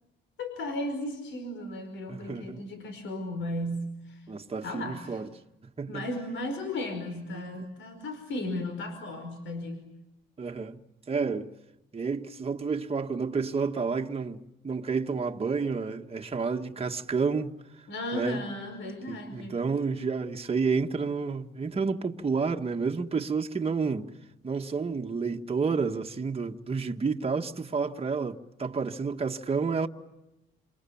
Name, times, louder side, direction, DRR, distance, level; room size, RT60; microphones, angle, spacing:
voice 1, 0.4-4.3 4.6-5.2 5.9-9.9 17.9-19.6, left 1 dB, 70° left, 5.1 m, -35 dB
voice 2, 2.1-2.6 4.3-5.3 5.8-6.0 7.6-7.7 10.4-10.8 11.1-11.5 11.9-17.5 18.1-18.4 19.1-24.1 24.4-29.9, right 5 dB, 30° right, 1.8 m, -30 dB
28.5 x 28.0 x 7.3 m
cardioid pair, 90°, 20 cm